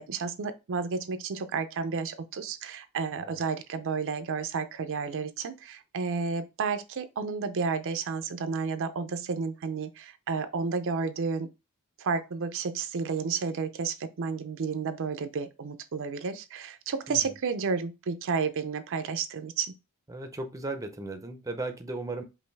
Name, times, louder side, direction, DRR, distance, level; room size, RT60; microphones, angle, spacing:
voice 1, 0.0-11.5 12.0-19.7, right 5 dB, 60° right, 0.5 m, -31 dB
voice 2, 20.1-22.2, right 2 dB, 15° right, 0.6 m, -36 dB
5.3 x 2.6 x 3.3 m
head